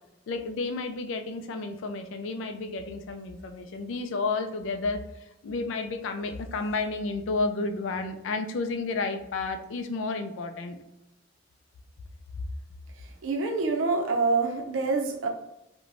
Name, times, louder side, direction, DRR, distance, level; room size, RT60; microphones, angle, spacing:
voice 1, 0.3-10.8, left 3 dB, 70° left, 6 dB, 0.3 m, -31 dB
voice 2, 13.2-15.3, right 3 dB, 80° right, 3 dB, 0.5 m, -26 dB
2.5 x 2.1 x 3.1 m, 0.86 s
head